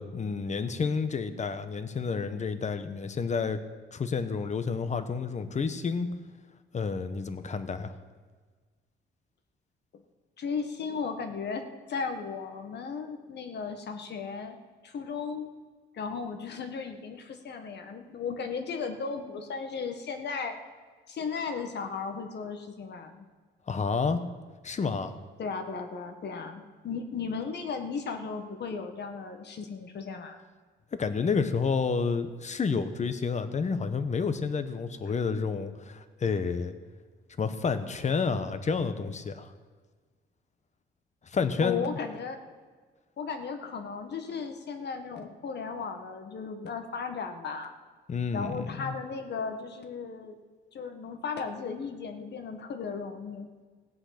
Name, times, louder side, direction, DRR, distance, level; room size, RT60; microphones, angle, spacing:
voice 1, 0.0-3.6 3.9-6.1 6.7-7.9 23.7-24.2 24.6-25.1 30.9-36.7 37.4-39.5 41.3-41.8 48.1-48.9, left 5 dB, 35° left, 10 dB, 1.1 m, -30 dB
voice 2, 10.4-14.6 14.8-15.5 15.9-20.6 21.1-23.3 25.4-30.4 41.6-42.4 43.2-47.7 48.3-50.4 50.7-53.5, left 5 dB, 60° left, 6 dB, 1.6 m, -35 dB
17.5 x 7.9 x 5.9 m, 1.5 s
cardioid pair, 90°, 20 cm